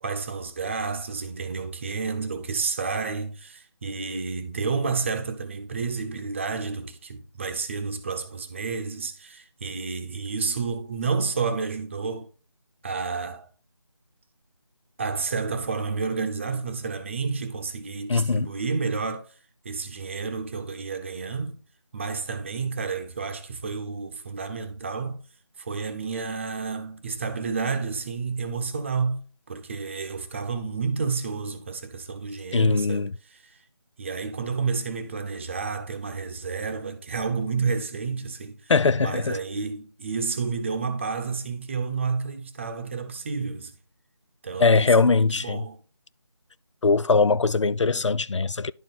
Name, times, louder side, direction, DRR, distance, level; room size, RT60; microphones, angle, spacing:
voice 1, 0.0-12.3 12.8-13.5 15.0-19.3 19.6-21.6 21.9-25.2 25.6-33.6 34.0-38.7 39.0-43.8 44.4-45.8, right 4 dB, 25° right, 0.8 m, -30 dB
voice 2, 18.1-18.5 32.5-33.1 38.7-39.4 44.6-45.6 46.8-48.7, left 4 dB, 85° left, 0.4 m, -21 dB
11.0 x 4.5 x 4.0 m
figure-of-eight pair, 165°, 15 cm